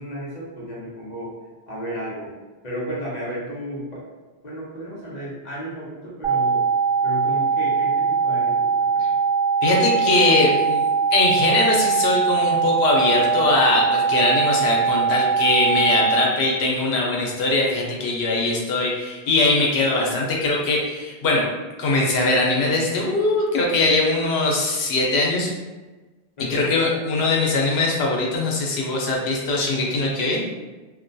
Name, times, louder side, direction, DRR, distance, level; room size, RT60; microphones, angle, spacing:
voice 1, 0.0-1.3 1.7-2.3 2.6-4.0 4.4-6.6 7.0-9.2 26.4-26.8, equal, 45° left, -6 dB, 0.7 m, -33 dB
sound 1, 6.2-16.2, right 5 dB, 60° right, 0.6 m, -21 dB
voice 2, 9.6-10.8 11.1-21.5 21.8-25.5 26.5-30.4, left 2 dB, 80° left, -2 dB, 0.9 m, -21 dB
2.4 x 2.2 x 2.6 m, 1.2 s
omnidirectional pair, 1.1 m